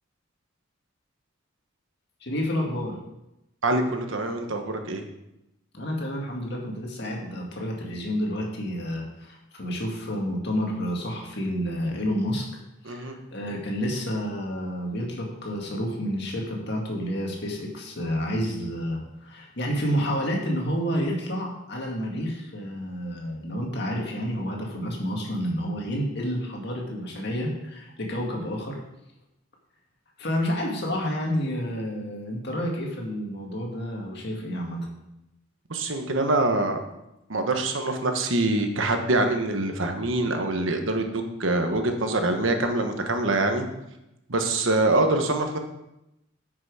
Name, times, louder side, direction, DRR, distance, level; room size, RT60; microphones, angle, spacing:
voice 1, 2.2-3.0 5.7-12.5 12.8-28.8 30.2-34.8, equal, 55° left, 0 dB, 2.0 m, -29 dB
voice 2, 3.6-5.0 12.8-13.2 35.7-36.8 37.3-43.7 44.3-45.6, right 2 dB, 75° right, 5 dB, 1.2 m, -24 dB
10.0 x 6.1 x 4.8 m, 0.88 s
head